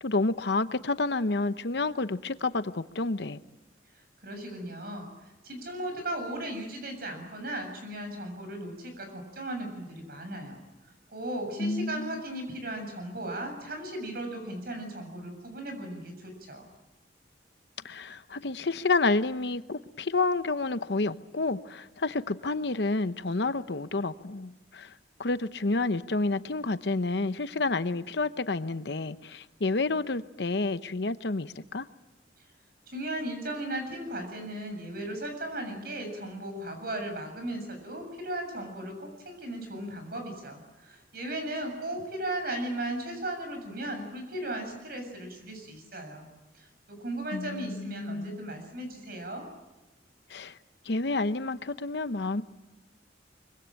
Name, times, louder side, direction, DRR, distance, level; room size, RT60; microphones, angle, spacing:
voice 1, 0.0-3.4 11.6-12.2 17.8-24.9 25.2-31.9 47.3-48.4 50.3-50.6 50.9-52.4, left 3 dB, 65° left, 12 dB, 0.9 m, -29 dB
voice 2, 4.2-10.6 11.1-16.7 32.9-46.3 46.5-49.4, right 1 dB, 55° right, 5 dB, 7.2 m, -36 dB
24.5 x 24.0 x 8.8 m, 1.0 s
head